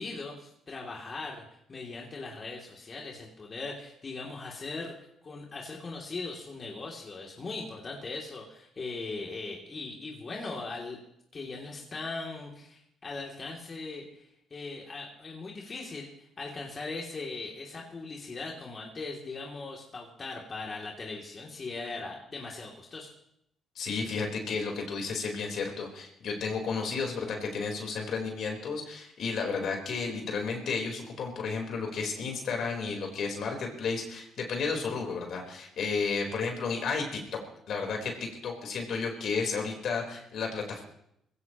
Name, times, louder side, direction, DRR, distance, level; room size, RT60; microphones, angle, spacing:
voice 1, 0.0-1.4 1.7-4.9 5.2-11.0 11.3-23.1, left 3 dB, 40° left, -2 dB, 2.9 m, -39 dB
voice 2, 23.8-37.4 37.7-40.8, left 5 dB, 65° left, 1 dB, 4.3 m, -32 dB
21.0 x 16.5 x 3.1 m, 0.75 s
cardioid pair, 80°, 0 cm